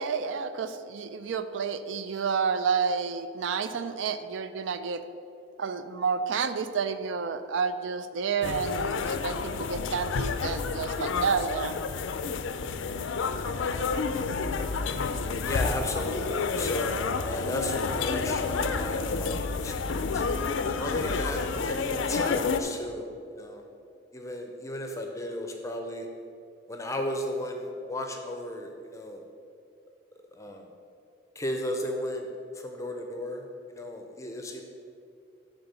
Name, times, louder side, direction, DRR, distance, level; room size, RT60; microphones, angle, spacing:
voice 1, 0.0-5.0 5.6-11.7, right 5 dB, 75° right, 11 dB, 0.4 m, -30 dB
sound 1, 8.4-22.6, left 4 dB, 80° left, 0.4 m, -30 dB
voice 2, 15.4-20.2 20.8-23.1 23.4-23.6 24.1-26.1 26.7-29.2 30.3-30.6 31.4-32.3 32.6-34.6, left 1 dB, 15° left, 3 dB, 0.5 m, -34 dB
sound 2, 16.4-20.8, right 1 dB, 60° right, 1.6 m, -45 dB
8.0 x 4.0 x 6.7 m, 2.5 s
head